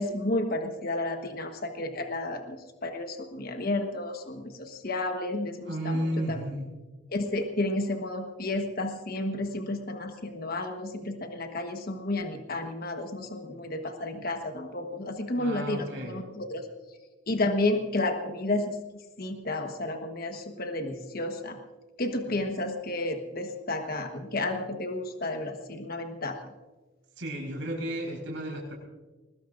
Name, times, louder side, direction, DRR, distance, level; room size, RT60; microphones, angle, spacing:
voice 1, 0.0-6.4 7.1-16.7 17.3-18.8 19.2-21.6 22.0-26.4, left 2 dB, 55° left, 5 dB, 1.2 m, -31 dB
voice 2, 5.6-6.7 15.4-16.2 27.2-28.7, right 1 dB, 85° right, -1 dB, 5.1 m, -33 dB
21.5 x 20.0 x 2.5 m, 1.2 s
head